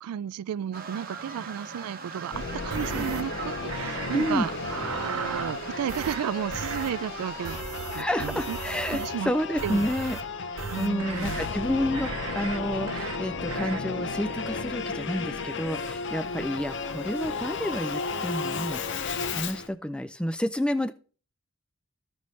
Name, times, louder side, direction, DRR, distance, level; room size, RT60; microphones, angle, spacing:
voice 1, 0.0-4.5 4.9-7.6 8.0-8.6 8.9-9.3 9.6-9.9 10.7-11.4, right 9 dB, 90° right, 0.3 m, -33 dB
sound 1, 0.7-7.6, right 4 dB, 40° right, 0.8 m, -41 dB
Singing / Musical instrument, 2.3-19.7, left 4 dB, 55° left, 0.6 m, -34 dB
sound 2, 2.7-3.2 3.7-4.3 4.6-5.6 5.9-6.2 6.5-6.9 7.5-9.2 9.6-10.2 10.6-11.5 11.9-12.6 12.9-13.2 13.5-13.8, right 5 dB, 70° right, 0.8 m, -35 dB
voice 2, 4.1-4.5 7.9-10.2 10.8-18.8 19.3-20.9, left 1 dB, 5° left, 0.3 m, -29 dB
14.5 x 5.4 x 3.1 m
head